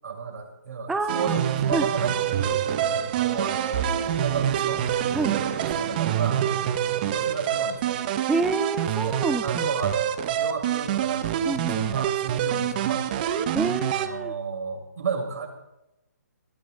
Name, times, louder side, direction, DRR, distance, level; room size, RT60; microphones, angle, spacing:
voice 1, 0.0-2.6 2.9-4.9 5.3-6.5 7.1-8.0 9.0-13.3 13.9-15.5, right 5 dB, 60° right, 0 dB, 6.9 m, -32 dB
voice 2, 0.9-1.4 1.7-1.9 5.1-5.4 8.3-9.7 11.5-12.0 13.5-14.3, right 3 dB, 5° right, 7 dB, 0.4 m, -28 dB
sound 1, 1.1-14.1, right 10 dB, 30° right, 1.1 m, -26 dB
21.5 x 15.0 x 4.1 m, 0.89 s
hypercardioid pair, 155°, 10 cm